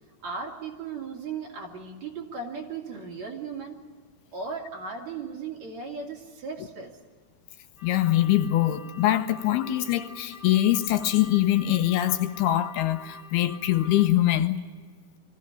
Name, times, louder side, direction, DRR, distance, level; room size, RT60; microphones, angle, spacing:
voice 1, 0.2-3.8 4.3-7.0, right 5 dB, 45° right, 0 dB, 3.7 m, -36 dB
voice 2, 7.8-14.6, left 13 dB, 80° left, 9 dB, 2.8 m, -23 dB
sound 1, 7.8-14.1, left 3 dB, 10° right, 4.5 m, -46 dB
24.0 x 15.5 x 9.9 m, 1.5 s
omnidirectional pair, 4.6 m